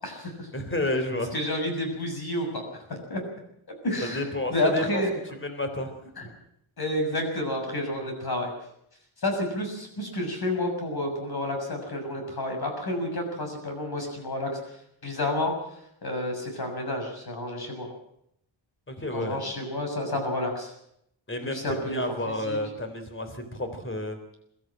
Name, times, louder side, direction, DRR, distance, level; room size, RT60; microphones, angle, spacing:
voice 1, 0.0-0.5 1.3-3.2 3.8-5.1 6.2-6.3 6.8-8.5 9.2-17.9 19.1-20.7 21.4-22.0 22.3-22.6, left 1 dB, 50° left, 4 dB, 7.0 m, -30 dB
voice 2, 0.5-1.3 4.1-5.0 5.4-5.9 18.9-19.4 21.3-24.2, left 1 dB, 25° left, 7 dB, 3.6 m, -30 dB
22.5 x 14.0 x 9.0 m, 0.75 s
wide cardioid pair, 125°, 48 cm